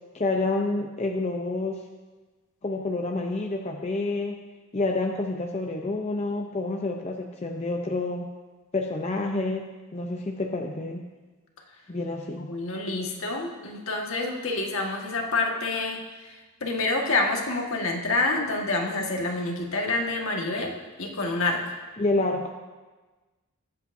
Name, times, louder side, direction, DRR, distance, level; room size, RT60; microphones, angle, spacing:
voice 1, 0.1-1.8 2.6-4.4 4.7-8.3 8.7-11.0 11.9-12.5 22.0-22.5, left 2 dB, 30° left, 2 dB, 0.6 m, -28 dB
voice 2, 12.5-16.0 16.6-21.6, left 2 dB, 65° left, 0 dB, 1.6 m, -27 dB
21.5 x 8.1 x 2.6 m, 1.3 s
head